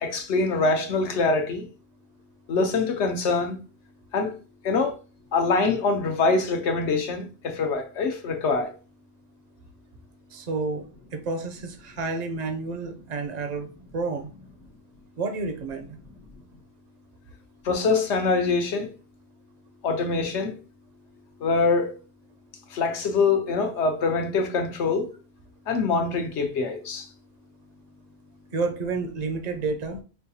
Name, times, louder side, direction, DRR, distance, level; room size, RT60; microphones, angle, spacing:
voice 1, 0.0-1.7 2.5-3.6 4.1-4.3 4.6-5.0 5.3-8.7 17.6-18.9 19.8-20.5 21.4-22.0 22.7-25.1 25.7-27.0, left 4 dB, 80° left, 1.1 m, -24 dB
voice 2, 10.3-13.7 13.9-14.3 15.2-16.0 28.5-30.0, right 3 dB, 45° right, 0.6 m, -30 dB
5.6 x 2.3 x 2.7 m
omnidirectional pair, 1.2 m